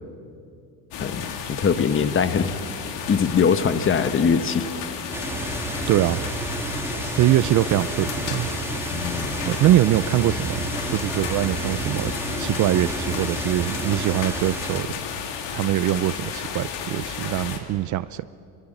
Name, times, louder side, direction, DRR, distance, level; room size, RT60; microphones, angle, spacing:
sound 1, 0.9-17.6, left 6 dB, 65° left, 3.1 m, -33 dB
voice 1, 1.0-2.5 3.1-4.7 8.9-9.4, left 6 dB, 25° left, 11 dB, 1.2 m, -22 dB
sound 2, 5.1-14.8, right 2 dB, 5° right, 2.1 m, -31 dB
voice 2, 5.9-6.2 7.0-8.5 9.4-12.1 12.4-15.0 15.5-18.2, right 14 dB, 40° right, 16 dB, 0.5 m, -23 dB
25.5 x 23.0 x 9.0 m, 2.5 s
cardioid pair, 130°, 45 cm